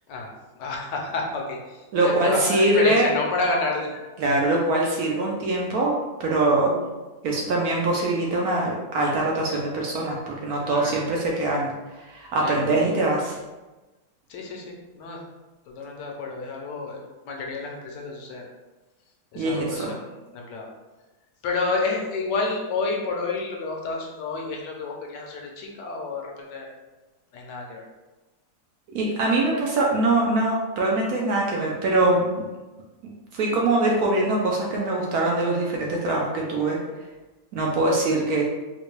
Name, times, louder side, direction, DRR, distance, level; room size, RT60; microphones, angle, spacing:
voice 1, 0.6-4.1 10.6-10.9 12.4-12.8 14.3-15.2 15.7-18.5 19.3-20.7 21.4-26.7 27.3-27.8, left 3 dB, 70° left, 0 dB, 1.2 m, -30 dB
voice 2, 1.9-3.1 4.2-5.9 6.2-6.8 7.2-13.4 19.3-19.9 28.9-32.5 33.3-36.8 37.5-38.4, right 2 dB, 70° right, -2 dB, 0.8 m, -23 dB
3.9 x 2.2 x 3.0 m, 1.2 s
omnidirectional pair, 2.0 m